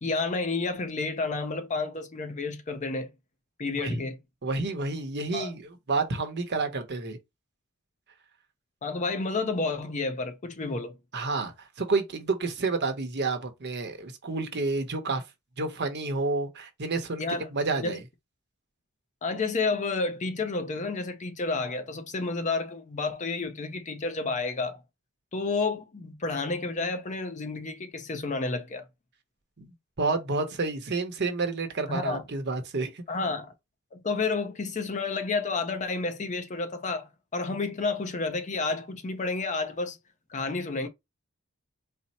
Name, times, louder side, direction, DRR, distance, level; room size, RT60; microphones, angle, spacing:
voice 1, 0.0-3.1 3.6-4.2 5.3-5.5 8.8-10.9 17.2-17.5 17.8-18.0 19.2-24.8 25.3-28.8 31.9-32.2 33.1-33.5 33.9-40.0 40.3-40.9, left 3 dB, 35° left, 0.5 m, -30 dB
voice 2, 3.8-4.1 4.4-7.2 11.1-15.2 15.6-17.2 17.5-18.0 29.6-33.0, right 3 dB, 50° right, 0.8 m, -30 dB
4.2 x 2.0 x 4.1 m
head